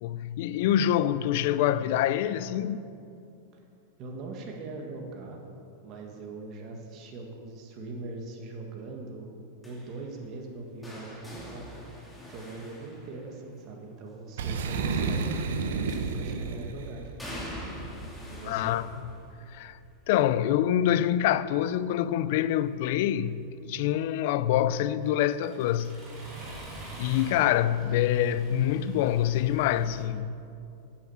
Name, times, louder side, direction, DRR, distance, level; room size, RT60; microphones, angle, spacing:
voice 1, 0.0-2.8 18.4-19.1 19.5-19.8 20.1-23.4 23.7-26.0 27.0-30.5, left 11 dB, 60° left, 0.4 m, -26 dB
voice 2, 4.0-5.4 5.8-9.4 9.6-17.6 18.3-18.7, right 3 dB, 40° right, 1.6 m, -41 dB
sound 1, 9.6-13.7 15.9-16.5 17.2-23.0 23.4-23.8 25.0-25.1, equal, 5° left, 2.1 m, -45 dB
Boom, 14.4-17.1, right 4 dB, 80° right, 0.9 m, -30 dB
Accelerating revving vroom, 24.8-30.0, right 1 dB, 20° right, 3.0 m, -46 dB
10.0 x 7.4 x 7.1 m
supercardioid pair, 140°, 0 cm